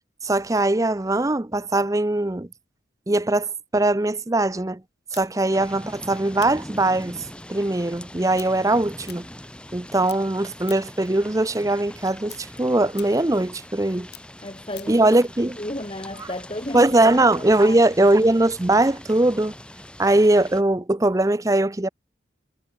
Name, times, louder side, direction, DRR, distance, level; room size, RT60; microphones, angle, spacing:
voice 1, 0.2-2.5 3.1-4.8 5.1-9.3 9.7-14.1 14.9-15.6 16.7-19.5 20.0-21.9, right 2 dB, 20° right, 0.6 m, -21 dB
sound 1, 5.1-9.8 10.0-11.1 11.4-15.1, left 14 dB, 65° left, 6.3 m, -47 dB
sound 2, 5.5-20.6, left 1 dB, 5° left, 3.9 m, -42 dB
voice 2, 14.4-15.2 15.6-17.9, left 1 dB, 25° left, 2.3 m, -34 dB
head